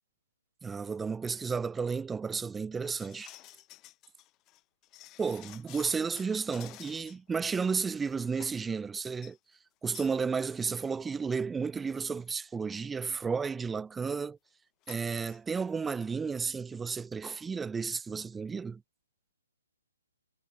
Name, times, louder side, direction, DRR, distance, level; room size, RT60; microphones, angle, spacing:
voice 1, 0.6-3.3 5.2-9.4 9.8-14.4 14.9-18.8, right 5 dB, 10° right, 1.0 m, -33 dB
sound 1, 2.8-7.3 7.6-7.7 8.0-8.7 9.1-9.4 9.9-10.2 10.5-10.6 10.9-11.0 11.8-11.9 12.2-12.5 14.8-15.4 15.7-16.0 16.3-16.4, left 17 dB, 25° left, 5.8 m, -52 dB
figure-of-eight pair, 135°, 0 cm